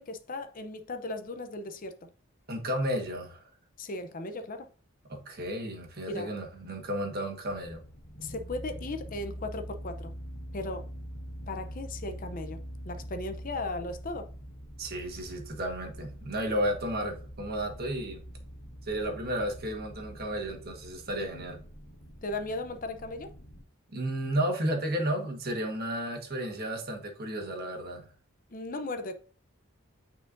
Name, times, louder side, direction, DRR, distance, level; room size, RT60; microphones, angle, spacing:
voice 1, 0.0-1.9 3.8-4.7 6.1-6.3 8.2-10.1 10.5-10.9 11.5-14.3 22.2-23.3 28.5-29.2, left 2 dB, 40° left, 0.6 m, -37 dB
voice 2, 2.5-3.5 5.1-7.8 14.8-18.2 18.8-21.6 23.9-28.0, right 1 dB, 45° right, 1.5 m, -33 dB
sound 1, 7.4-23.6, equal, 90° left, 1.7 m, -44 dB
8.9 x 4.4 x 2.6 m
head